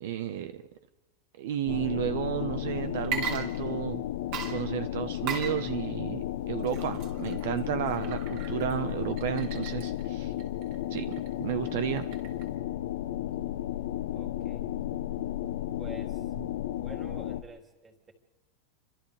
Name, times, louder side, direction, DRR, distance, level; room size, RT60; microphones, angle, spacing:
voice 1, 0.0-0.5 1.4-4.0 4.5-10.3 10.9-11.0 11.4-12.1, right 11 dB, 60° right, 9 dB, 1.3 m, -32 dB
sound 1, 1.7-17.4, left 12 dB, 75° left, 1.2 m, -34 dB
Water / Liquid, 3.0-4.0 4.3-12.5, right 6 dB, 40° right, 4.1 m, -39 dB
voice 2, 14.1-14.6 15.8-16.3 16.8-18.1, right 3 dB, 15° right, 2 dB, 3.1 m, -48 dB
29.5 x 25.5 x 3.6 m, 1.1 s
supercardioid pair, 170°, 0 cm